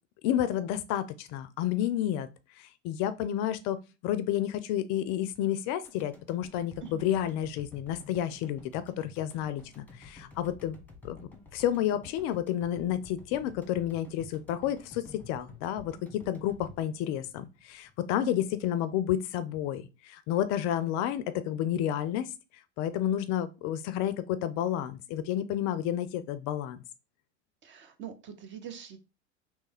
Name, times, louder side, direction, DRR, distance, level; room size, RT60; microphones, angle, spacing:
voice 1, 0.2-2.3 2.6-3.8 4.0-10.8 11.0-11.2 11.5-22.3 22.8-26.8, left 11 dB, 50° left, 0.4 m, -30 dB
sound 1, 5.8-18.1 18.4-18.5, left 3 dB, 5° left, 1.2 m, -52 dB
voice 2, 27.6-29.0, right 9 dB, 30° right, 0.7 m, -43 dB
3.2 x 3.1 x 3.4 m
hypercardioid pair, 85°, 36 cm